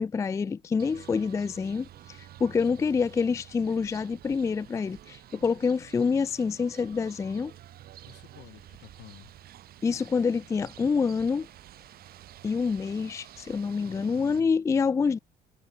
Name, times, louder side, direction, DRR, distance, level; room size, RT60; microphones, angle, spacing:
voice 1, 0.0-7.5 9.8-11.5 12.4-15.2, left 5 dB, 20° left, 0.3 m, -27 dB
sound 1, 0.8-14.4, right 13 dB, 65° right, 1.7 m, -50 dB
voice 2, 8.1-9.3 13.8-14.5, left 19 dB, 85° left, 5.0 m, -50 dB
cardioid pair, 110°, 17 cm